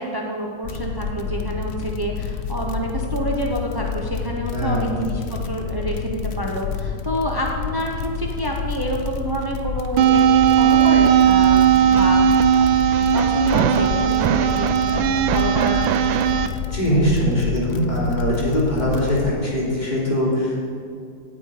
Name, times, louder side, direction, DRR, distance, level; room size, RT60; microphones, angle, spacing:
voice 1, 0.0-16.2, right 1 dB, 25° right, 0 dB, 0.4 m, -28 dB
sound 1, 0.6-19.3, left 7 dB, 55° left, 0.7 m, -29 dB
voice 2, 4.5-5.0 16.7-20.7, equal, 20° left, -5 dB, 3.3 m, -21 dB
sound 2, 10.0-16.5, right 8 dB, 85° right, 1.4 m, -17 dB
17.0 x 8.4 x 5.1 m, 2.4 s
omnidirectional pair, 2.1 m